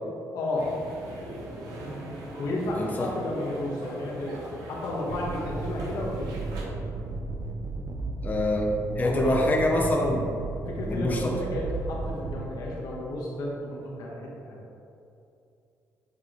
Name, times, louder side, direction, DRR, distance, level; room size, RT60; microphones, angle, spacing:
voice 1, 0.3-0.7 2.4-4.4 4.7-6.4 9.0-9.5 10.7-14.6, left 1 dB, 80° left, -3 dB, 1.3 m, -32 dB
sound 1, 0.5-6.7, right 1 dB, 90° right, 1.2 m, -40 dB
voice 2, 2.7-3.1 8.2-10.3 10.9-11.3, left 1 dB, 25° left, -1 dB, 0.7 m, -25 dB
sound 2, 5.1-12.5, right 3 dB, 55° right, 0.6 m, -34 dB
8.2 x 3.2 x 3.9 m, 2.7 s
cardioid pair, 95°, 6 cm